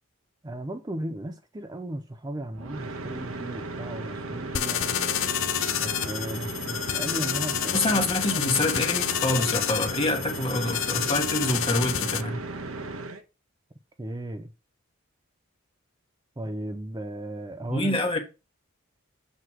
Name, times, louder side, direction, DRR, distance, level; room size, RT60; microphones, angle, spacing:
voice 1, 0.4-5.0 5.8-8.0 8.3-8.4 14.0-14.5 16.4-18.0, right 1 dB, 20° right, 0.5 m, -36 dB
sound 1, 2.5-13.2, right 2 dB, 80° right, 1.1 m, -36 dB
sound 2, 4.5-12.2, left 10 dB, 70° left, 0.5 m, -29 dB
voice 2, 7.7-12.4 17.7-18.2, left 1 dB, 25° left, 1.4 m, -26 dB
7.8 x 3.0 x 6.1 m
head